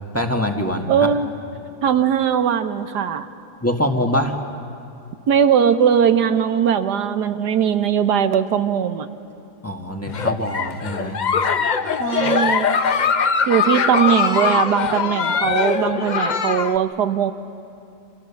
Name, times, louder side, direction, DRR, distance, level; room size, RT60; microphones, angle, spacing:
voice 1, 0.1-1.1 3.6-4.3 9.6-11.2, equal, 10° left, 2 dB, 1.5 m, -23 dB
voice 2, 0.9-1.3 1.8-3.3 5.3-9.1 12.0-12.7 13.5-17.3, right 8 dB, 85° right, 9 dB, 1.6 m, -19 dB
Giggle, 10.1-16.8, left 6 dB, 50° left, 0.5 m, -21 dB
29.0 x 26.5 x 7.1 m, 2.6 s
omnidirectional pair, 1.7 m